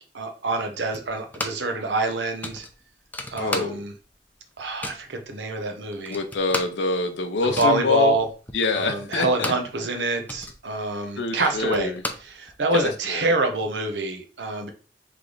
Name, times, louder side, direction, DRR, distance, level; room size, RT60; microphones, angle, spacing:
voice 1, 0.1-2.7 3.3-3.9 4.6-6.2 7.4-8.3 8.7-11.9 12.2-14.7, right 2 dB, 80° right, 5 dB, 0.8 m, -26 dB
sound 1, 0.9-1.8 2.0-2.1 2.4-4.1 4.4-5.1 5.6-5.7 5.9-9.8 10.1-12.8, left 2 dB, 10° left, 0.5 m, -35 dB
voice 2, 3.4-3.8 6.1-8.1 8.5-9.5 11.2-12.0 12.7-13.3, left 4 dB, 90° left, 6 dB, 0.6 m, -25 dB
3.3 x 3.2 x 3.8 m, 0.37 s
head